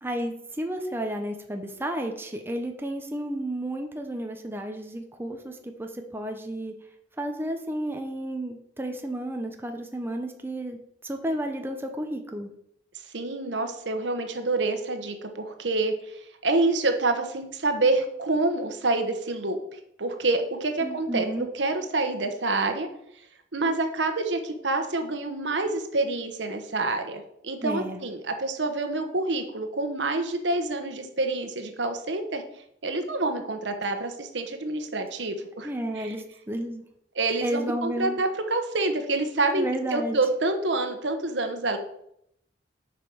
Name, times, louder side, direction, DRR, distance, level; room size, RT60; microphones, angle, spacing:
voice 1, 0.0-6.7 7.2-10.8 11.0-12.5 20.8-21.5 27.6-28.0 35.6-36.8 37.4-38.2 39.6-40.2, right 1 dB, 10° right, 4 dB, 0.8 m, -32 dB
voice 2, 13.1-15.9 16.4-19.6 20.0-21.3 21.5-22.9 23.5-32.4 32.8-35.7 36.0-36.1 37.2-39.7 39.9-41.8, right 2 dB, 75° right, 6 dB, 1.2 m, -27 dB
7.4 x 5.3 x 6.2 m, 0.74 s
head